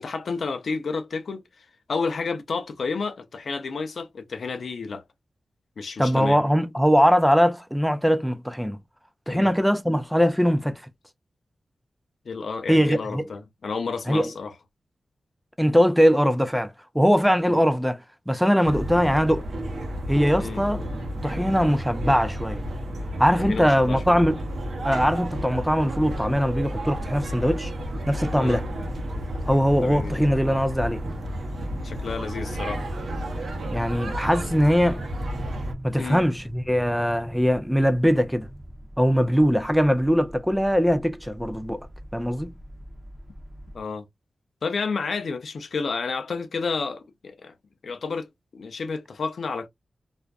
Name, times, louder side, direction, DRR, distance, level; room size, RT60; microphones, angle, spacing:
voice 1, 0.0-5.0 5.8-6.4 9.3-9.5 12.3-14.5 17.5-17.6 20.4-20.6 23.4-24.2 28.3-28.6 29.8-30.2 31.8-32.8 36.0-36.2 43.7-44.0 44.6-47.5 47.8-48.3 48.5-49.7, left 4 dB, 65° left, 0.4 m, -31 dB
voice 2, 6.0-8.8 9.3-10.8 12.7-13.2 14.1-14.3 15.6-18.0 18.3-19.5 20.1-20.8 21.2-22.6 23.2-24.4 24.8-27.7 28.1-28.6 29.5-31.0 33.7-35.1 35.8-38.5 39.0-41.9 42.1-42.5, equal, ahead, 0.3 m, -21 dB
Disembarking Riverboat Crowd, 18.6-35.7, equal, 75° right, 0.7 m, -32 dB
sound 1, 25.0-43.8, equal, 25° right, 0.7 m, -43 dB
2.4 x 2.2 x 2.3 m
wide cardioid pair, 100°, 0 cm